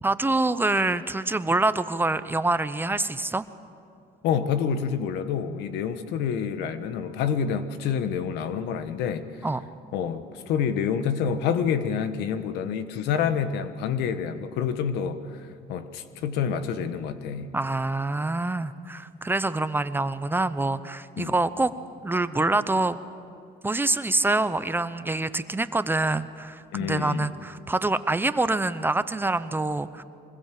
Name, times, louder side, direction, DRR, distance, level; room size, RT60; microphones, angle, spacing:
voice 1, 0.0-3.4 9.4-9.6 17.5-21.7 22.0-23.0 23.6-30.0, right 2 dB, 10° right, 13 dB, 0.7 m, -26 dB
voice 2, 4.2-9.5 9.9-17.5 21.2-21.3 26.7-27.3, left 7 dB, 90° left, 10 dB, 1.4 m, -28 dB
24.0 x 21.0 x 7.7 m, 2.5 s
cardioid pair, 110°, 17 cm